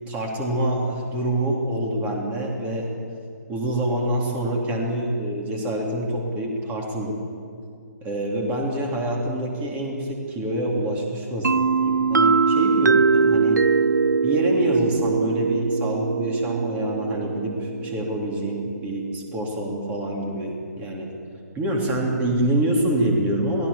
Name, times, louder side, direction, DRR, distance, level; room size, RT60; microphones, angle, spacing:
voice 1, 0.1-2.9 3.5-7.2 8.0-13.6 14.2-21.1 21.5-23.7, right 1 dB, 15° right, 0 dB, 3.5 m, -26 dB
sound 1, 11.4-19.1, right 4 dB, 75° right, 0.6 m, -22 dB
27.5 x 19.0 x 7.1 m, 2.4 s
figure-of-eight pair, 140°, 10 cm